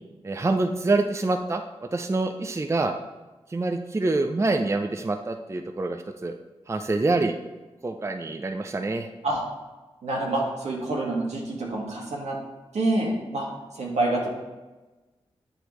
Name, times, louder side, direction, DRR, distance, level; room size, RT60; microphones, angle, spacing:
voice 1, 0.2-2.9 3.5-6.4 6.7-7.4 7.8-9.1, right 2 dB, 25° right, 6 dB, 0.4 m, -26 dB
voice 2, 10.0-12.4 12.7-13.5 13.7-14.3, right 2 dB, 75° right, -2 dB, 1.6 m, -27 dB
8.0 x 4.9 x 3.1 m, 1.2 s
cardioid pair, 45°, 12 cm